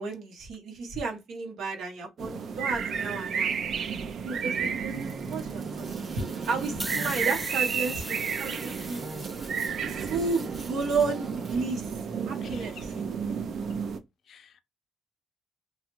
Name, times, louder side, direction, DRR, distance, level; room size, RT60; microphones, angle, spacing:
voice 1, 0.0-3.7 4.2-9.0 10.1-12.7, right 4 dB, 80° right, 1.0 m, -33 dB
sound 1, 2.2-14.0, right 6 dB, 65° right, 0.5 m, -32 dB
sound 2, 4.9-12.0, right 2 dB, 40° right, 1.0 m, -43 dB
sound 3, 6.8-10.2, equal, ahead, 0.4 m, -39 dB
voice 2, 12.4-13.0 13.5-13.8 14.2-14.6, left 8 dB, 60° left, 0.4 m, -51 dB
3.1 x 2.4 x 3.0 m
cardioid pair, 90°, 0 cm